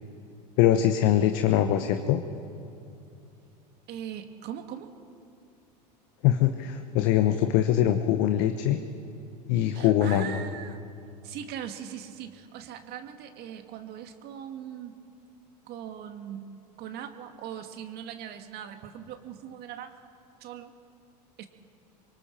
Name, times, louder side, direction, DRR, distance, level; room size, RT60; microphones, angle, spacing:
voice 1, 0.6-2.2 6.2-8.8 9.5-10.4, left 11 dB, 60° left, 7 dB, 1.1 m, -23 dB
voice 2, 3.9-4.9 9.7-10.8 11.2-15.0 15.7-20.0 20.4-20.7 21.4-21.5, right 9 dB, 50° right, 6 dB, 1.8 m, -40 dB
27.0 x 23.5 x 4.5 m, 2.7 s
hypercardioid pair, 90°, 21 cm